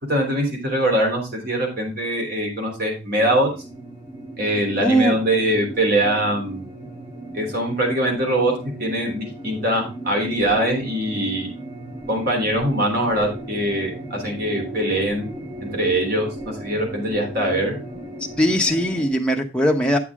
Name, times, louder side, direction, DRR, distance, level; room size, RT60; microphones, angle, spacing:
voice 1, 0.1-3.5 4.4-6.7 7.3-8.5 8.8-11.5 12.1-15.3 15.6-17.8, right 1 dB, 50° right, 1 dB, 3.4 m, -22 dB
sound 1, 3.1-19.1, right 1 dB, 25° right, 3.6 m, -36 dB
voice 2, 4.8-5.2 18.4-20.0, equal, 5° left, 0 dB, 1.0 m, -19 dB
9.2 x 7.0 x 3.6 m, 0.30 s
head